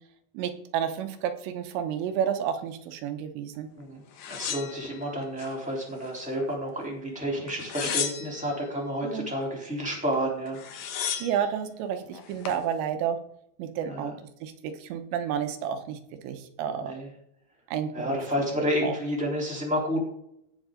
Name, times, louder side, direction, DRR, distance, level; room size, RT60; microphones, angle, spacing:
voice 1, 0.3-3.7 9.0-9.3 11.2-13.2 13.6-14.1 14.4-16.0 16.2-16.9 17.7-18.2 18.6-19.0, right 8 dB, 85° right, 7 dB, 3.3 m, -30 dB
sound 1, 4.2-5.5 6.0-6.8 7.5-8.6 10.1-10.2 10.5-11.4 12.1-12.6, left 8 dB, 70° left, 1.7 m, -34 dB
voice 2, 4.3-10.6 13.9-14.1 16.8-17.1 17.9-20.0, equal, ahead, -1 dB, 2.7 m, -30 dB
16.5 x 6.2 x 3.8 m, 0.72 s
omnidirectional pair, 5.0 m